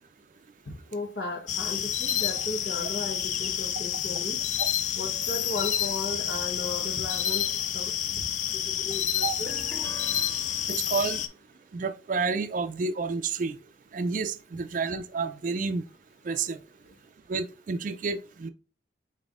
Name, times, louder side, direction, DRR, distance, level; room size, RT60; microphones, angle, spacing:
voice 1, 0.7-4.4 5.0-7.9 8.5-9.5, left 3 dB, 85° left, 0.9 m, -36 dB
sound 1, 1.5-11.3, left 10 dB, 40° left, 0.3 m, -29 dB
sound 2, 9.5-11.2, left 2 dB, 15° left, 0.7 m, -44 dB
voice 2, 10.7-11.2 11.7-13.6 13.9-15.8 16.3-16.6 17.3-18.5, right 4 dB, 45° right, 0.3 m, -30 dB
5.3 x 4.1 x 2.4 m
head